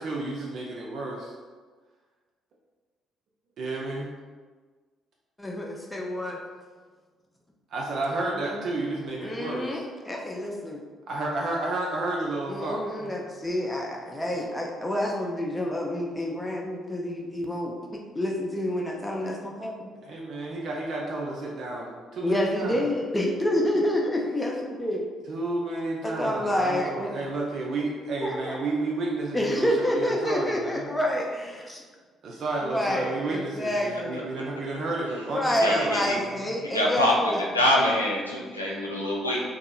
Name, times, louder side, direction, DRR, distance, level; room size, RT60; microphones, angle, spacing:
voice 1, 0.0-1.3 3.6-4.1 7.7-9.8 11.1-13.1 20.0-22.8 25.3-30.9 32.2-36.5, right 2 dB, 55° right, -2 dB, 0.3 m, -31 dB
voice 2, 5.4-6.4 8.3-8.7 9.2-10.8 12.5-17.8 18.1-19.9 22.2-25.0 26.0-27.1 28.2-28.6 29.3-31.8 32.6-34.3 35.3-37.4, left 1 dB, 15° left, -1 dB, 0.5 m, -28 dB
voice 3, 35.6-36.2 36.6-39.4, left 1 dB, 90° left, -4 dB, 0.3 m, -25 dB
2.7 x 2.4 x 2.3 m, 1.4 s
figure-of-eight pair, 45°, 0 cm